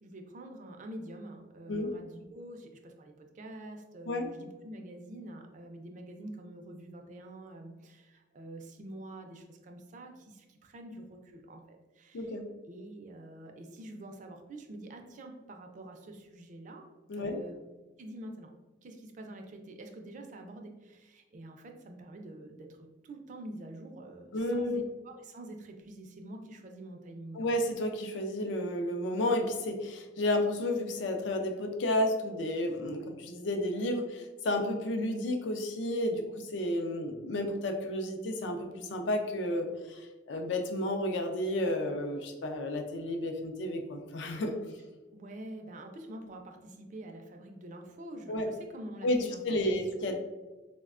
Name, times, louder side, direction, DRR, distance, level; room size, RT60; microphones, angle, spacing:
voice 1, 0.0-12.3 12.7-16.9 17.2-17.5 18.0-18.5 18.8-27.5 45.1-49.7 50.0-50.1, right 1 dB, 40° right, 4 dB, 0.4 m, -46 dB
voice 2, 24.3-24.8 27.3-44.6 48.3-48.5 49.0-50.2, left 1 dB, 75° left, 4 dB, 0.4 m, -32 dB
4.0 x 2.1 x 2.4 m, 1.2 s
head